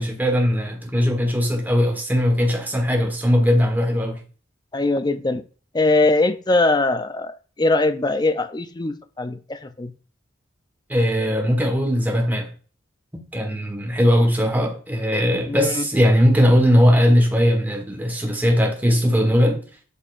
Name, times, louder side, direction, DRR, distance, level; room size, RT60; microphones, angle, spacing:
voice 1, 0.0-4.2 10.9-12.5 13.3-19.6, equal, 10° right, 1.4 m, -19 dB
voice 2, 4.7-5.4 5.7-9.9 15.5-15.8, left 2 dB, 20° left, 0.5 m, -21 dB
8.3 x 5.5 x 2.5 m
head